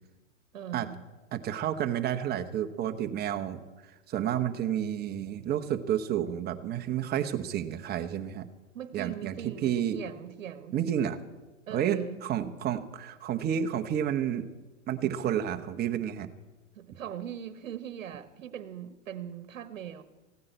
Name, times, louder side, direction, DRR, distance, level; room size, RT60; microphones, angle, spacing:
voice 1, 0.5-1.0 8.7-10.8 11.7-12.2 16.7-20.0, right 9 dB, 85° right, 1.1 m, -40 dB
voice 2, 1.3-3.6 4.1-8.5 8.9-10.0 10.7-11.2 11.7-14.4 14.9-16.3, right 10 dB, 25° right, 1.0 m, -30 dB
16.0 x 9.5 x 8.0 m
hypercardioid pair, 125°, 38 cm